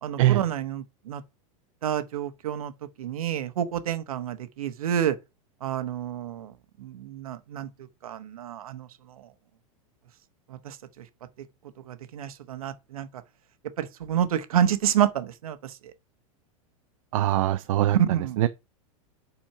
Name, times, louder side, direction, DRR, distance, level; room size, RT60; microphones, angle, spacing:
voice 1, 0.0-1.2 1.8-2.7 3.0-5.1 5.6-6.5 6.8-7.7 8.0-8.9 10.6-10.8 11.9-13.1 13.8-15.6 17.9-18.4, right 10 dB, 85° right, 1.1 m, -28 dB
voice 2, 17.1-18.0 18.4-18.5, right 14 dB, 70° right, 0.6 m, -22 dB
5.8 x 4.3 x 5.7 m
supercardioid pair, 130°, 18 cm